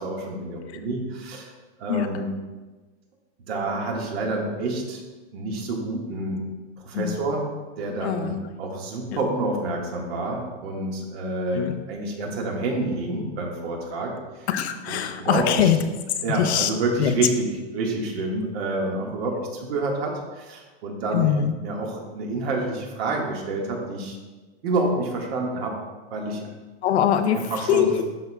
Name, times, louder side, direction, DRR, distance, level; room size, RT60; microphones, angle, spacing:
voice 1, 0.0-1.5 1.8-2.3 3.5-5.0 5.3-6.5 6.8-7.5 7.8-14.5 14.9-15.7 16.2-17.5 17.7-21.3 21.6-24.2 24.6-25.8 26.1-26.4 27.2-27.9, right 2 dB, 70° right, 0 dB, 1.7 m, -28 dB
voice 2, 8.0-8.4 11.5-11.7 14.5-15.8 16.3-16.7 17.0-17.1 21.1-21.5 26.8-27.4 27.7-28.0, left 9 dB, 80° left, 9 dB, 0.7 m, -22 dB
12.0 x 4.3 x 2.3 m, 1.3 s
hypercardioid pair, 135°, 32 cm